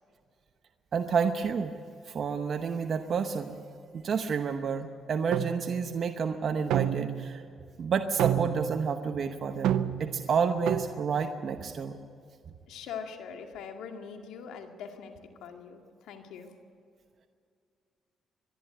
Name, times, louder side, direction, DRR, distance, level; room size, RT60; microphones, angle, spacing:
voice 1, 0.9-1.7 2.0-3.6 3.9-7.4 7.8-12.0, right 6 dB, 55° right, 6 dB, 0.9 m, -30 dB
sound 1, 5.3-5.7 6.7-7.3 8.2-8.7 9.6-10.1 10.7-11.0, right 11 dB, 85° right, 0.7 m, -28 dB
voice 2, 12.7-16.5, left 6 dB, 85° left, 4 dB, 2.0 m, -42 dB
24.5 x 11.0 x 9.7 m, 2.4 s
cardioid pair, 90°, 0 cm